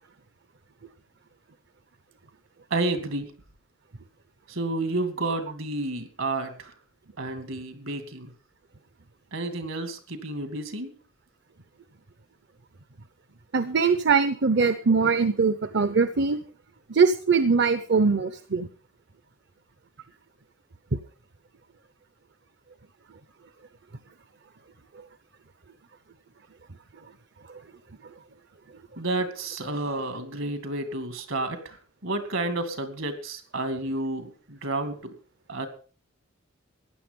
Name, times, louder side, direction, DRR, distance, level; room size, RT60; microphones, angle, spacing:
voice 1, 2.7-3.3 4.5-6.7 7.2-8.3 9.3-10.9 29.0-35.1 35.5-35.7, right 2 dB, 75° right, 9 dB, 2.5 m, -30 dB
voice 2, 13.5-16.4 16.9-18.7, right 5 dB, 55° right, 12 dB, 0.8 m, -22 dB
15.0 x 10.0 x 5.4 m, 0.40 s
head